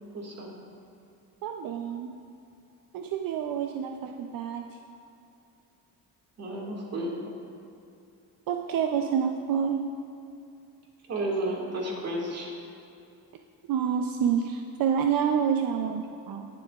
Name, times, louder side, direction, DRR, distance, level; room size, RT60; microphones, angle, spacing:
voice 1, 0.1-0.5 6.4-7.1 11.1-12.5, right 1 dB, 50° right, -2 dB, 1.9 m, -32 dB
voice 2, 1.4-2.2 2.9-4.8 8.5-9.9 13.7-16.5, right 7 dB, 85° right, 4 dB, 0.5 m, -28 dB
18.5 x 7.6 x 2.4 m, 2.7 s
wide cardioid pair, 170°, 33 cm